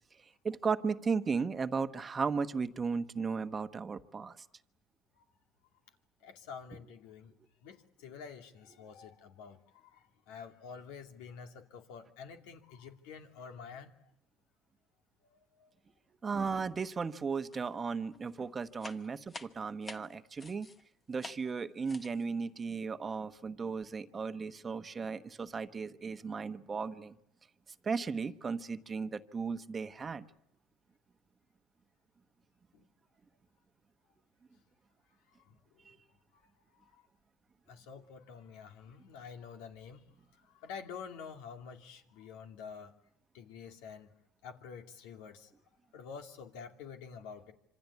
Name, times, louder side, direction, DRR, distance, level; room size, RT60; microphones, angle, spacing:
voice 1, 0.4-4.4 16.2-20.7 21.1-27.1 27.8-30.2, right 5 dB, 25° right, 10 dB, 1.1 m, -35 dB
voice 2, 6.2-7.3 7.6-13.9 15.3-15.7 17.7-17.8 32.7-32.9 35.4-35.9 36.3-37.1 37.7-40.0 40.4-42.9 43.3-44.1 44.4-45.5 45.9-47.5, left 6 dB, 85° left, 5 dB, 2.6 m, -49 dB
sound 1, 17.5-17.9 18.1-20.8 21.2-21.5 21.8-22.3, left 2 dB, 20° left, 1.2 m, -49 dB
26.5 x 25.5 x 8.4 m, 0.80 s
cardioid pair, 130°, 0 cm